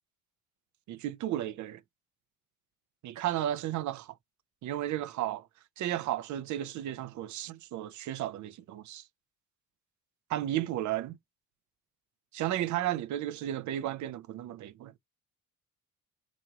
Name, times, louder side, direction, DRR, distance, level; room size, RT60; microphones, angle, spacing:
voice 1, 0.9-1.8 3.0-4.1 4.6-5.5 5.8-9.0 10.3-11.2 12.3-14.9, right 12 dB, 45° right, 0.5 m, -33 dB
3.0 x 2.6 x 2.3 m
hypercardioid pair, 55°, 41 cm